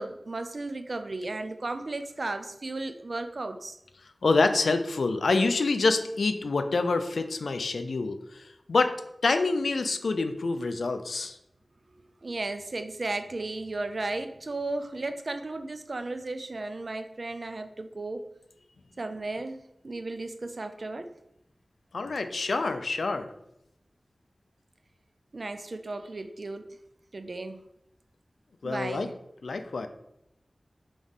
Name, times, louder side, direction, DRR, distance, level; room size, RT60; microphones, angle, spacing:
voice 1, 0.0-3.8 12.2-18.2 19.0-21.1 25.3-26.8 27.1-27.6 28.6-29.2, right 2 dB, 60° right, 8 dB, 0.4 m, -35 dB
voice 2, 4.2-8.9 9.2-11.4 21.9-23.3 28.6-29.1 29.4-29.9, left 3 dB, 90° left, 8 dB, 0.3 m, -26 dB
3.9 x 3.1 x 3.5 m, 0.82 s
cardioid pair, 45°, 0 cm